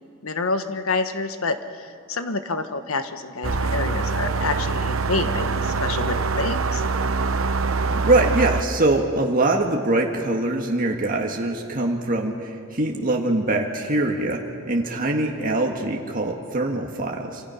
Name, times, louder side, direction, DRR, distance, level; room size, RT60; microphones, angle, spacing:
voice 1, 0.2-6.8, left 3 dB, 75° left, 8 dB, 1.3 m, -28 dB
sound 1, 3.4-8.6, right 4 dB, 70° right, 1.0 m, -24 dB
voice 2, 7.9-17.4, right 2 dB, 40° right, 1 dB, 1.7 m, -23 dB
27.0 x 26.0 x 5.7 m, 2.4 s
head